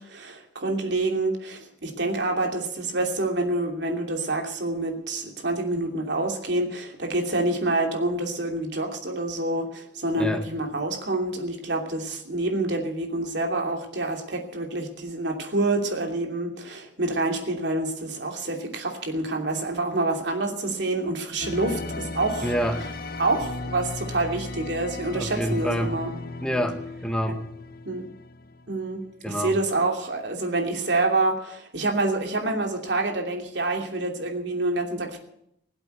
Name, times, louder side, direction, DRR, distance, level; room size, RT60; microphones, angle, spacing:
voice 1, 0.1-22.5 23.2-26.1 27.8-28.1 28.7-35.2, right 2 dB, 80° right, 2 dB, 2.9 m, -27 dB
sound 1, 21.4-29.0, left 3 dB, 55° left, 0.9 m, -36 dB
voice 2, 22.4-22.9 25.1-25.9 26.4-27.4 29.2-29.6, equal, 5° left, 6 dB, 1.1 m, -27 dB
21.0 x 8.2 x 8.1 m, 0.75 s
head